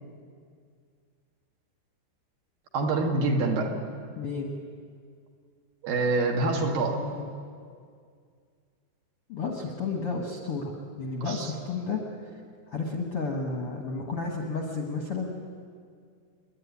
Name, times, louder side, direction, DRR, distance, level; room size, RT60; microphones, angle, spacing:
voice 1, 2.7-3.7 5.8-7.0 11.2-11.5, right 3 dB, 60° right, 1 dB, 3.6 m, -26 dB
voice 2, 4.2-4.5 6.9-7.3 9.3-12.0 12.7-15.3, left 4 dB, 55° left, 1 dB, 1.6 m, -32 dB
28.0 x 11.0 x 9.8 m, 2.2 s
omnidirectional pair, 4.7 m